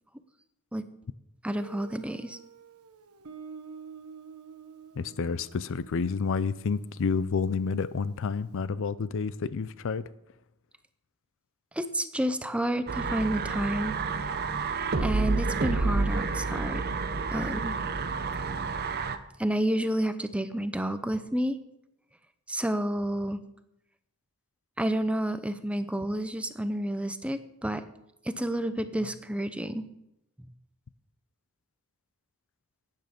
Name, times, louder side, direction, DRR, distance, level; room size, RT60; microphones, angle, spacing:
voice 1, 1.4-2.4 11.8-14.0 15.0-16.9 17.3-17.7 19.4-21.6 22.5-23.4 24.8-27.8 28.3-29.8, right 1 dB, 5° right, 11 dB, 0.6 m, -30 dB
Guitar, 1.5-8.2, right 6 dB, 80° right, 1.0 m, -49 dB
voice 2, 5.0-10.1, left 5 dB, 60° left, 17 dB, 0.5 m, -29 dB
sound 1, 12.9-19.2, right 4 dB, 45° right, 0.8 m, -29 dB
12.5 x 9.2 x 5.1 m, 0.84 s
head